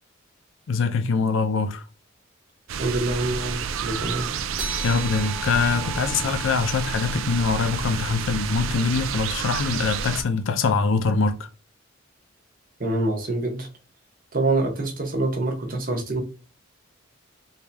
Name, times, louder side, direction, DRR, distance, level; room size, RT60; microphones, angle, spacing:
voice 1, 0.7-1.8 4.8-11.3, left 4 dB, 70° left, 0.5 m, -23 dB
sound 1, 2.7-10.2, right 6 dB, 80° right, 0.4 m, -30 dB
voice 2, 2.8-4.3 12.8-13.7 14.3-16.2, right 2 dB, 45° right, 0.9 m, -25 dB
Reception bell, 4.6-9.5, right 2 dB, 5° right, 0.6 m, -40 dB
3.3 x 2.7 x 3.3 m
head